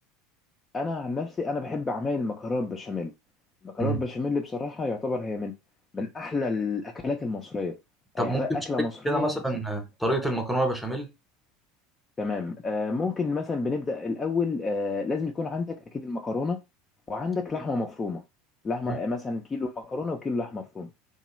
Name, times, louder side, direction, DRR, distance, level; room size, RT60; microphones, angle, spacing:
voice 1, 0.7-3.1 3.6-5.5 5.9-7.8 8.1-9.6 12.2-16.6 17.1-18.2 18.6-20.9, left 3 dB, 20° left, 0.4 m, -30 dB
voice 2, 9.0-11.1 17.6-17.7 18.9-19.0, right 2 dB, ahead, 0.8 m, -27 dB
2.9 x 2.3 x 3.0 m
figure-of-eight pair, 75°, 0 cm